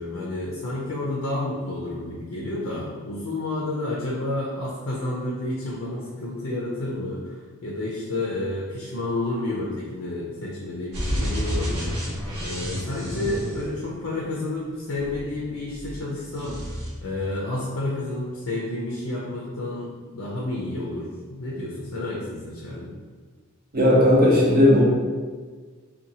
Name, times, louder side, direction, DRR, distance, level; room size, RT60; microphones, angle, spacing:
voice 1, 0.0-16.6 17.0-22.9, left 2 dB, 75° left, -4 dB, 0.5 m, -30 dB
sound 1, 10.9-14.2 14.9-16.0 16.3-16.9, equal, 80° right, 0.9 m, -30 dB
voice 2, 23.7-24.8, left 1 dB, 40° right, -4 dB, 0.6 m, -16 dB
2.7 x 2.2 x 2.6 m, 1.5 s
head